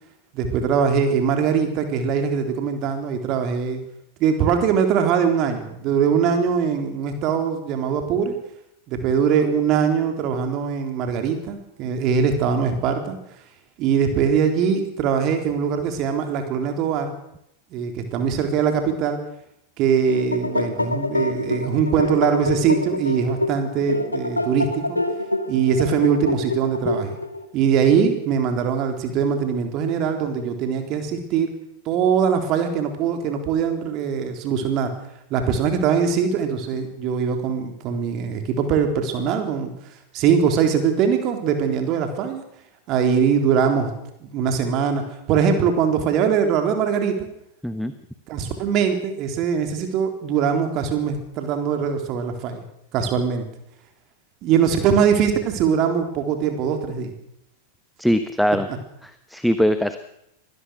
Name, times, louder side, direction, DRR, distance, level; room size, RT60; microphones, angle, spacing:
voice 1, 0.3-3.8 4.2-8.4 8.9-13.2 13.8-17.1 17.7-19.2 19.8-25.0 25.5-27.2 27.5-31.5 31.9-34.9 35.3-39.7 40.1-42.4 42.9-43.9 44.2-45.0 45.3-47.3 48.3-52.6 52.9-53.4 54.4-57.1, right 7 dB, 40° right, 5 dB, 3.8 m, -22 dB
sound 1, 19.8-27.5, left 1 dB, 85° left, 1.9 m, -26 dB
voice 2, 58.0-58.7 59.0-60.0, equal, ahead, 10 dB, 1.2 m, -21 dB
24.0 x 18.5 x 6.5 m, 0.79 s
figure-of-eight pair, 90°, 0 cm